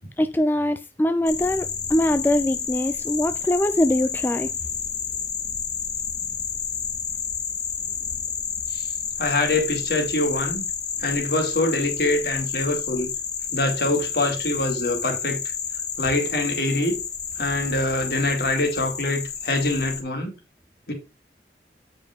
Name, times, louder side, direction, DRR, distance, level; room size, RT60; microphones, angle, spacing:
voice 1, 0.2-4.5, left 1 dB, 10° left, 0.3 m, -22 dB
sound 1, 1.2-20.0, left 7 dB, 40° left, 1.5 m, -30 dB
voice 2, 9.2-10.6 11.0-13.1 13.5-15.4 16.0-17.0 17.4-20.3 20.9-21.0, left 2 dB, 55° left, 2.3 m, -24 dB
9.0 x 5.3 x 3.7 m
head